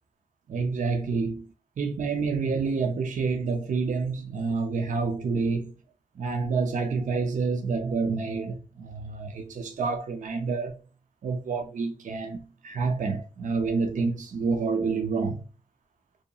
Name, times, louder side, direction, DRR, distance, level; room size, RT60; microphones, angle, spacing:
voice 1, 0.5-1.5 1.8-5.7 6.2-10.8 11.2-15.4, right 4 dB, 55° right, 0.5 m, -28 dB
2.7 x 2.2 x 2.6 m
cardioid pair, 85°, 15 cm